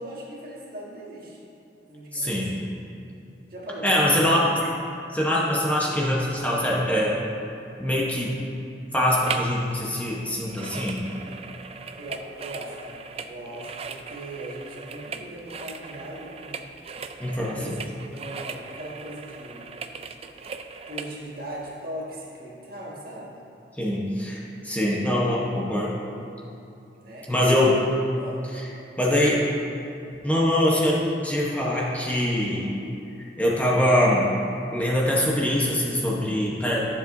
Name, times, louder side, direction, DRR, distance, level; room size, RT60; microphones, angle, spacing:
voice 1, 0.0-1.5 1.9-2.6 3.5-4.5 12.0-16.7 17.3-19.7 20.9-23.4 27.0-27.7 28.2-28.5, right 1 dB, 55° right, -5 dB, 1.8 m, -39 dB
voice 2, 2.1-2.5 3.8-4.5 5.1-7.2 7.8-8.4 8.9-11.0 17.2-17.6 23.8-24.4 24.6-25.9 27.3-27.8 29.0-29.5 30.2-32.7 33.2-34.2 34.7-36.9, left 1 dB, 10° left, -5 dB, 1.0 m, -23 dB
sound 1, 9.2-9.6 9.8-21.1 21.7-21.8, right 5 dB, 35° right, 0.4 m, -38 dB
13.5 x 7.4 x 2.7 m, 2.8 s
head